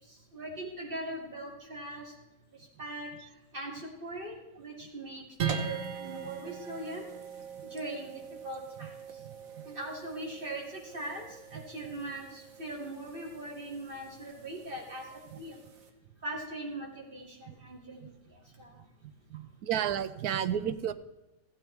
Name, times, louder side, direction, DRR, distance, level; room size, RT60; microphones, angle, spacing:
voice 1, 0.3-2.1 2.8-3.1 3.5-7.1 7.7-8.1 8.4-8.9 9.7-15.5 16.2-18.7, right 1 dB, 35° right, -2 dB, 2.8 m, -40 dB
sound 1, 5.4-15.9, right 7 dB, 65° right, 1.5 m, -41 dB
voice 2, 19.3-20.9, right 9 dB, 90° right, 13 dB, 1.2 m, -31 dB
16.0 x 8.7 x 3.4 m, 1.0 s
omnidirectional pair, 1.6 m